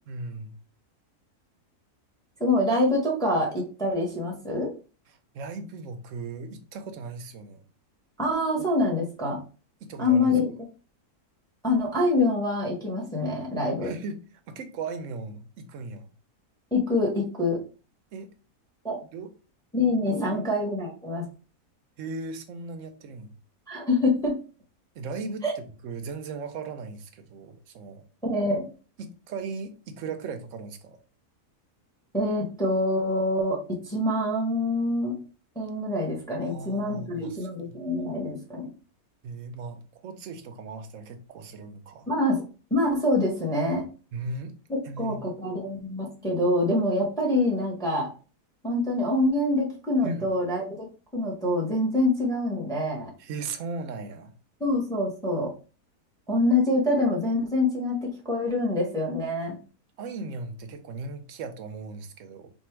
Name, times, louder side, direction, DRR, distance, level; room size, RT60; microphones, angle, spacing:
voice 1, 0.1-0.6 5.3-7.6 9.8-10.4 13.8-14.2 14.5-16.1 18.1-18.3 19.1-19.3 20.1-20.4 22.0-23.4 24.9-28.0 29.0-31.0 36.4-37.7 39.2-42.1 44.1-44.5 44.8-45.3 50.0-50.3 53.2-54.3 60.0-62.5, right 4 dB, 65° right, 1.0 m, -37 dB
voice 2, 2.4-4.7 8.2-9.4 10.0-10.5 11.6-13.9 16.7-17.6 18.8-19.0 19.7-21.3 23.7-24.4 25.4-25.5 28.2-28.6 32.1-35.2 35.5-38.7 42.1-42.4 42.7-43.9 44.7-48.1 48.6-50.9 51.1-53.1 54.6-55.5 56.3-59.6, left 2 dB, 5° left, 1.0 m, -25 dB
3.6 x 2.6 x 4.4 m
omnidirectional pair, 1.6 m